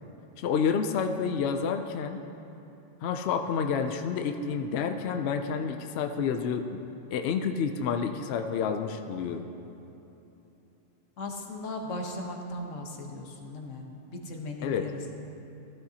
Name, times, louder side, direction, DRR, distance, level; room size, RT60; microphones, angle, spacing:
voice 1, 0.4-2.2 3.0-6.8 7.1-9.5 14.6-14.9, left 6 dB, 65° left, 6 dB, 0.8 m, -29 dB
voice 2, 11.2-13.9 14.1-15.2, left 2 dB, 90° left, 2 dB, 1.5 m, -37 dB
15.5 x 12.5 x 2.8 m, 3.0 s
omnidirectional pair, 1.2 m